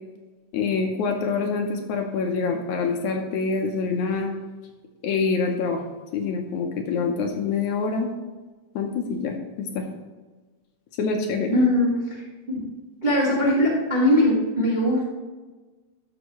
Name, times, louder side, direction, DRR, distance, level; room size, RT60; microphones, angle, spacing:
voice 1, 0.5-4.3 5.0-5.8 6.1-8.1 8.8-9.8 11.0-11.6, left 4 dB, 75° left, 3 dB, 2.0 m, -26 dB
voice 2, 11.5-12.2 13.0-15.1, left 1 dB, 25° right, -6 dB, 1.1 m, -20 dB
12.5 x 6.4 x 3.0 m, 1.3 s
omnidirectional pair, 3.7 m